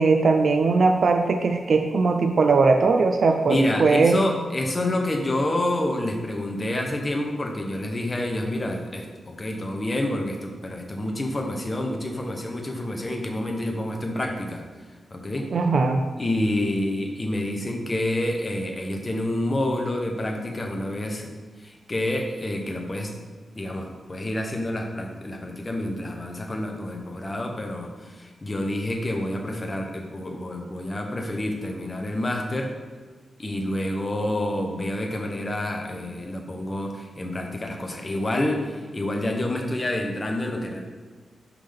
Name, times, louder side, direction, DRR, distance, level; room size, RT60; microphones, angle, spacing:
voice 1, 0.0-4.2 15.5-16.1, right 4 dB, 50° right, 5 dB, 0.4 m, -20 dB
voice 2, 3.5-14.6 15.1-15.5 16.2-21.3 21.6-23.1 23.5-32.7 33.4-40.8, left 1 dB, 20° left, 2 dB, 0.8 m, -28 dB
10.5 x 3.8 x 3.4 m, 1.5 s
wide cardioid pair, 165°, 0 cm